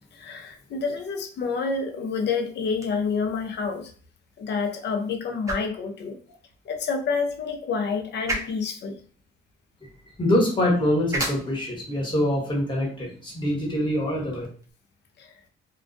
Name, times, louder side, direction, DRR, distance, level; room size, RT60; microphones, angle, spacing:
voice 1, 0.1-3.9 4.4-6.4 6.6-9.0 15.2-15.3, left 5 dB, 60° left, 4 dB, 0.6 m, -28 dB
sound 1, 2.7-14.7, right 1 dB, 15° right, 0.6 m, -39 dB
voice 2, 10.2-14.5, left 1 dB, 25° left, -3 dB, 1.2 m, -24 dB
2.3 x 2.1 x 2.5 m, 0.43 s
cardioid pair, 90°, 20 cm